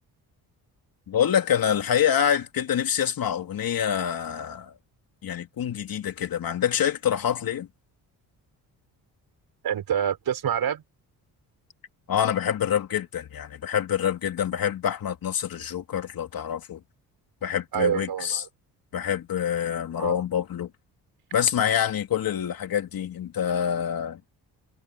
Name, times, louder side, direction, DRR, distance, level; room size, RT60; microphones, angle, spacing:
voice 1, 1.1-4.7 5.2-7.7 12.1-16.8 17.4-18.4 18.9-20.7 21.3-24.2, left 9 dB, 65° left, 3.1 m, -26 dB
voice 2, 9.6-10.8 17.7-18.4 19.9-20.2, right 9 dB, 70° right, 5.9 m, -26 dB
cardioid pair, 80°, 38 cm